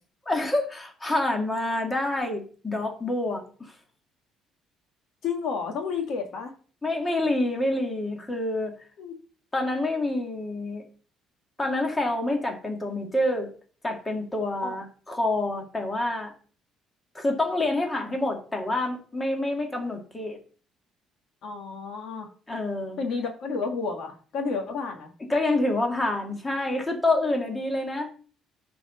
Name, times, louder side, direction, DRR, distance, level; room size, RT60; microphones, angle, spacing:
voice 1, 0.3-3.7 6.8-8.7 9.5-10.8 11.6-13.5 13.8-16.3 17.1-20.4 22.5-23.0 25.3-28.1, left 2 dB, 15° left, 1.9 m, -27 dB
voice 2, 5.2-6.5 9.0-9.2 14.6-14.8 21.4-22.3 23.0-25.1, left 5 dB, 60° left, 2.0 m, -31 dB
9.5 x 4.6 x 6.5 m
cardioid pair, 140°, 0 cm